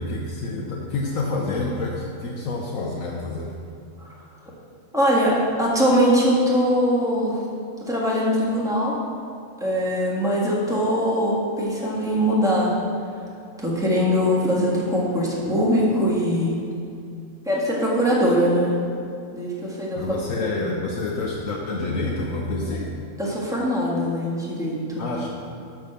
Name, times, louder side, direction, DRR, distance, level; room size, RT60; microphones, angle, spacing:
voice 1, 0.0-3.5 20.0-22.9 25.0-25.3, left 2 dB, 70° left, -2 dB, 1.1 m, -28 dB
voice 2, 4.9-7.4 7.9-9.0 9.6-12.7 13.6-16.5 17.4-18.7 19.3-20.6 23.2-25.0, equal, ahead, -5 dB, 1.5 m, -22 dB
6.8 x 6.0 x 6.6 m, 2.6 s
omnidirectional pair, 1.5 m